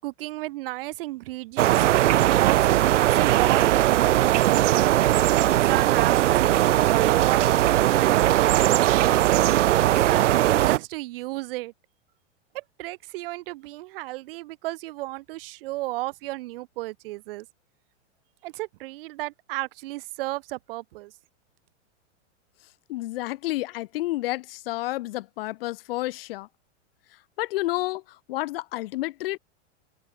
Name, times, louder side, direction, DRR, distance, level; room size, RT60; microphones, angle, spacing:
voice 1, 0.0-1.9 2.4-4.7 5.5-7.5 8.0-11.7 12.5-17.5 18.4-21.1, right 19 dB, 50° right, 7.5 m, -33 dB
sound 1, 1.6-10.8, right 14 dB, 80° right, 1.1 m, -19 dB
voice 2, 22.9-26.5 27.4-28.0 28.3-29.4, left 18 dB, 50° left, 2.6 m, -30 dB
open air
supercardioid pair, 160°, 35 cm